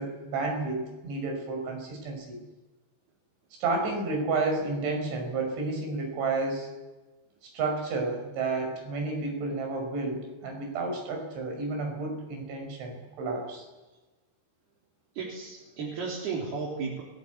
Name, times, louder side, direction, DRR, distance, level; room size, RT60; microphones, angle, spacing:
voice 1, 0.0-2.4 3.6-6.7 7.4-13.7, right 3 dB, 85° right, 3 dB, 7.8 m, -31 dB
voice 2, 15.2-17.0, right 5 dB, 60° right, -3 dB, 5.5 m, -34 dB
29.0 x 18.0 x 8.3 m, 1.2 s
omnidirectional pair, 5.2 m